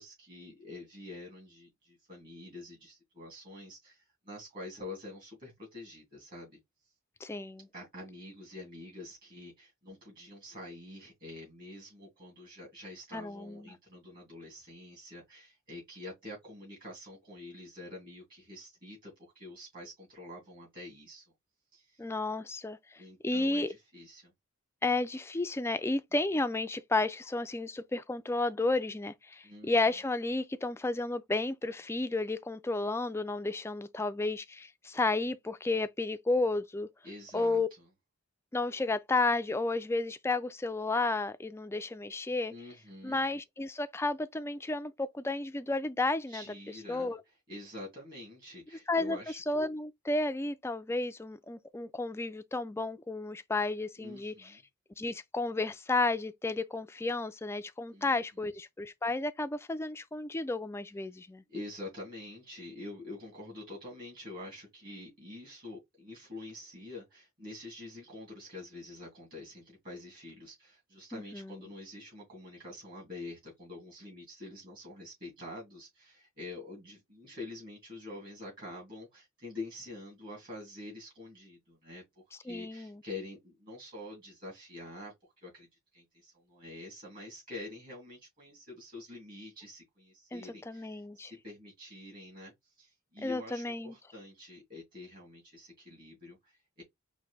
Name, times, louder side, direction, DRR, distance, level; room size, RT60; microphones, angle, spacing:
voice 1, 0.0-6.6 7.7-21.2 21.7-22.0 23.0-24.3 29.4-29.7 37.0-37.8 42.5-43.2 46.3-47.1 47.5-49.4 54.0-54.6 57.9-58.2 61.5-85.7 85.9-96.8, left 2 dB, 40° right, 2.7 m, -47 dB
voice 2, 7.2-7.7 13.1-13.7 22.0-22.8 23.2-23.7 24.8-36.9 37.3-37.7 38.5-42.5 43.0-46.4 46.9-47.2 48.9-49.2 49.5-54.5 55.0-61.4 71.1-71.7 82.5-83.0 90.3-91.3 93.2-93.9, left 2 dB, 10° left, 0.3 m, -32 dB
5.0 x 2.6 x 3.3 m
head